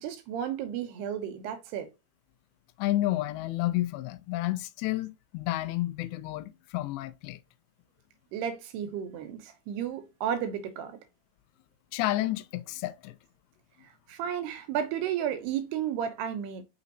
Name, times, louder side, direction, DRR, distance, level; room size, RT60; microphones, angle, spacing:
voice 1, 0.0-1.9 8.3-11.0 14.1-16.6, right 9 dB, 80° right, 2.7 m, -33 dB
voice 2, 2.8-7.4 11.9-13.2, left 16 dB, 85° left, 2.8 m, -30 dB
6.7 x 6.1 x 2.9 m
omnidirectional pair, 5.1 m